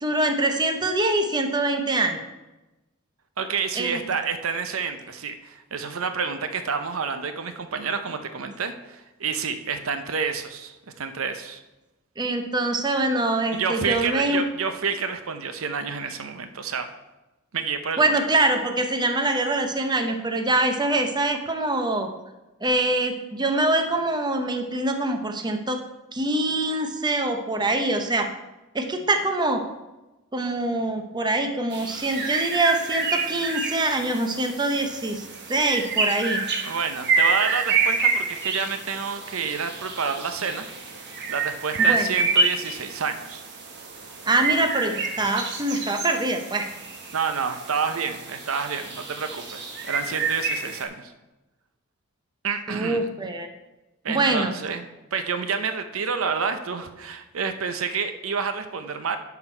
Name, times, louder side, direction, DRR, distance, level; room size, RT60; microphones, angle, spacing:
voice 1, 0.0-2.2 3.8-4.0 12.2-14.4 18.0-22.1 22.6-25.8 26.1-28.3 28.7-29.6 30.3-36.4 41.8-42.1 44.3-46.7 52.7-53.5 54.1-54.5, right 2 dB, 20° right, 6 dB, 0.7 m, -24 dB
voice 2, 3.4-11.6 13.5-16.9 17.5-18.0 36.6-40.7 41.3-43.4 47.1-51.1 52.4-53.1 54.0-54.9 55.1-59.2, right 5 dB, 75° right, 8 dB, 0.7 m, -29 dB
sound 1, 31.7-50.8, right 4 dB, 55° right, 1.4 m, -28 dB
10.5 x 6.0 x 4.5 m, 1.0 s
head